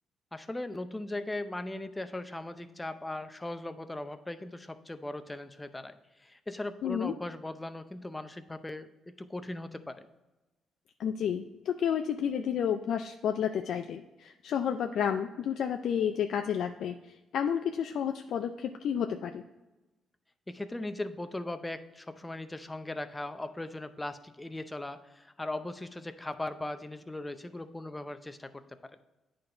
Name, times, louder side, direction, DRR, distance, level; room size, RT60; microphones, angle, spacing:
voice 1, 0.3-10.1 20.5-28.8, left 2 dB, 15° left, 10 dB, 0.5 m, -39 dB
voice 2, 6.8-7.1 11.0-17.0 17.3-19.4, left 8 dB, 70° left, 6 dB, 0.4 m, -31 dB
9.0 x 3.9 x 4.3 m, 1.1 s
cardioid pair, 90°, 0 cm